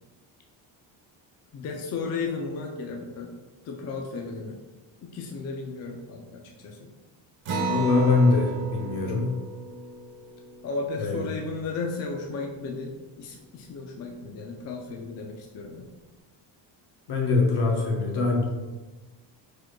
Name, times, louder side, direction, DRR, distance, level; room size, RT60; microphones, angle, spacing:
voice 1, 1.5-3.3 3.6-4.6 5.0-6.9 10.6-15.9, left 4 dB, 40° left, 1 dB, 0.4 m, -34 dB
Acoustic guitar, 7.5-12.3, right 3 dB, 90° right, 1.2 m, -35 dB
voice 2, 7.6-9.4 11.0-11.2 17.1-18.5, left 3 dB, 65° left, 0 dB, 0.8 m, -23 dB
4.7 x 4.1 x 2.2 m, 1.2 s
cardioid pair, 150°, 44 cm